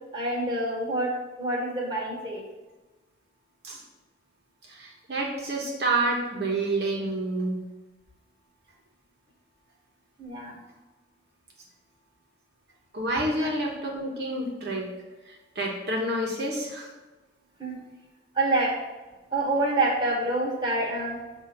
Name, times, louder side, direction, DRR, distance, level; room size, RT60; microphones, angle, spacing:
voice 1, 0.1-1.1 1.4-2.4 10.2-10.6 13.4-13.5 17.6-17.8 18.3-18.7 19.3-21.2, right 2 dB, 25° right, -3 dB, 1.3 m, -27 dB
voice 2, 4.6-7.7 12.9-14.9 15.3-16.9, right 2 dB, 60° right, -2 dB, 1.1 m, -29 dB
7.5 x 2.7 x 5.9 m, 1.2 s
head